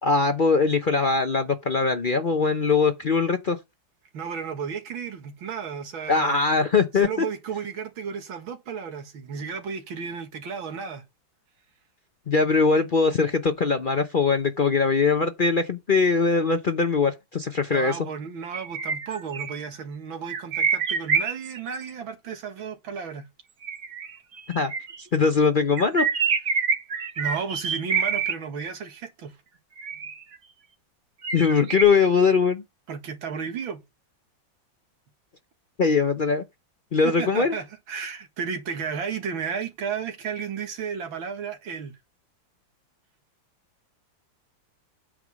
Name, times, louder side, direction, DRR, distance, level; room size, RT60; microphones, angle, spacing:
voice 1, 0.0-3.6 6.1-7.3 12.3-18.0 24.5-24.7 25.1-26.1 31.3-32.6 35.8-36.4 36.9-37.6, left 4 dB, 70° left, 0.4 m, -21 dB
voice 2, 4.1-6.4 7.0-11.0 17.7-23.3 27.2-29.4 32.9-33.8 37.0-42.0, right 6 dB, 80° right, 2.4 m, -33 dB
sound 1, 18.5-19.6 20.3-21.8 23.6-25.0 25.8-28.3 29.8-30.4 31.2-31.8, right 6 dB, 45° right, 1.2 m, -26 dB
8.8 x 4.9 x 6.3 m
omnidirectional pair, 2.1 m